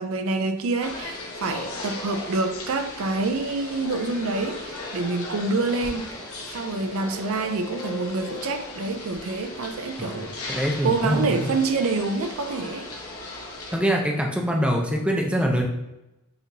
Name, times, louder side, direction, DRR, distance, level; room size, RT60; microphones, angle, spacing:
voice 1, 0.0-6.1 6.5-10.3 10.8-12.9, right 3 dB, 70° right, 8 dB, 0.4 m, -27 dB
sound 1, 0.8-13.8, left 2 dB, 85° left, 1.1 m, -37 dB
voice 2, 10.5-11.5 13.7-15.7, equal, 5° right, 0 dB, 0.5 m, -24 dB
6.6 x 3.0 x 2.7 m, 0.94 s
head